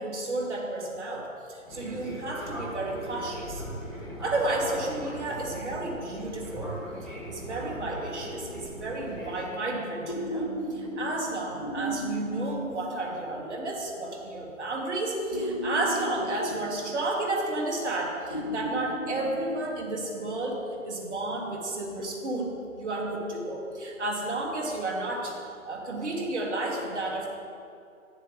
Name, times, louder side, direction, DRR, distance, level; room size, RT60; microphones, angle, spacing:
voice 1, 0.0-3.6 4.2-6.8 7.0-25.4 25.6-27.4, right 2 dB, 55° right, -1 dB, 1.9 m, -32 dB
Fixed-wing aircraft airplane, 1.7-9.5, equal, ahead, 1.9 m, -39 dB
sound 1, 8.2-8.9 10.1-13.6 15.3-17.6 18.3-20.3 22.0-22.1, right 1 dB, 30° left, 0.3 m, -35 dB
9.9 x 7.3 x 3.4 m, 2.5 s
figure-of-eight pair, 150°, 41 cm